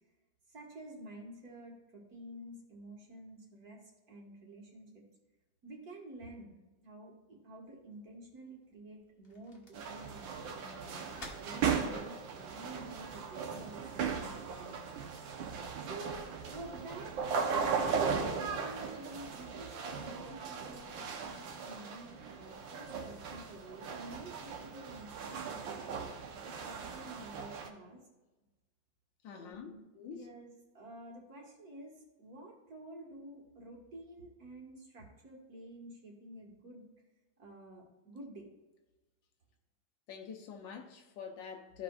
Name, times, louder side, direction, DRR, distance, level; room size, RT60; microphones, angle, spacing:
voice 1, 0.5-3.8 4.1-5.0 5.6-11.0 11.4-14.8 15.8-25.9 26.4-28.0 29.3-36.9 37.4-38.5, right 1 dB, 50° right, 2.0 m, -50 dB
sound 1, 7.6-13.7, left 2 dB, 35° left, 1.1 m, -57 dB
sound 2, 9.7-27.7, right 6 dB, 75° right, 1.6 m, -38 dB
voice 2, 29.2-30.3 40.1-41.8, left 7 dB, 75° left, 1.4 m, -46 dB
14.5 x 5.0 x 2.4 m
omnidirectional pair, 2.1 m